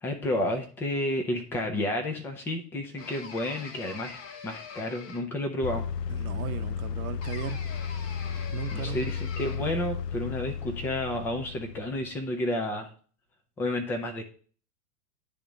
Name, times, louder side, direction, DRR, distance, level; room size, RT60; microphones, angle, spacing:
voice 1, 0.0-4.2 4.4-5.9 8.7-12.9 13.6-14.2, left 1 dB, 5° left, 4 dB, 0.3 m, -31 dB
sound 1, 3.0-5.5 7.2-9.8, left 5 dB, 30° left, 1.0 m, -44 dB
sound 2, 5.6-12.2, left 6 dB, 80° left, 0.6 m, -34 dB
voice 2, 6.1-7.6 8.5-9.1, right 12 dB, 60° right, 9 dB, 0.8 m, -37 dB
9.9 x 3.6 x 3.8 m, 0.42 s
hypercardioid pair, 105°, 48 cm